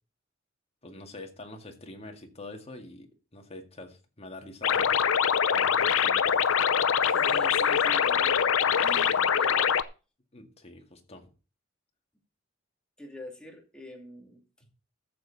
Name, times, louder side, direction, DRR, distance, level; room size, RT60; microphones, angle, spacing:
voice 1, 0.8-5.0 5.5-6.3 10.3-11.3, left 2 dB, 30° left, 2.1 m, -45 dB
sound 1, 4.6-9.8, left 7 dB, 80° left, 0.7 m, -24 dB
voice 2, 7.0-9.7 13.0-14.4, left 1 dB, 5° left, 2.8 m, -44 dB
13.5 x 7.5 x 4.1 m
head